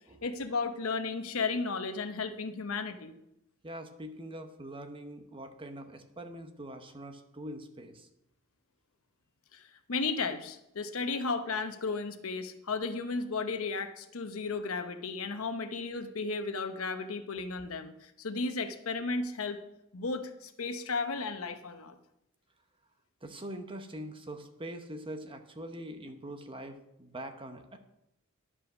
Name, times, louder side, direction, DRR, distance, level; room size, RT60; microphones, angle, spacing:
voice 1, 0.2-3.1 9.5-19.6 19.9-22.0, left 4 dB, 80° left, 8 dB, 0.9 m, -34 dB
voice 2, 3.6-8.1 23.2-27.8, right 1 dB, 25° right, 7 dB, 0.9 m, -43 dB
11.0 x 5.5 x 6.2 m, 0.84 s
head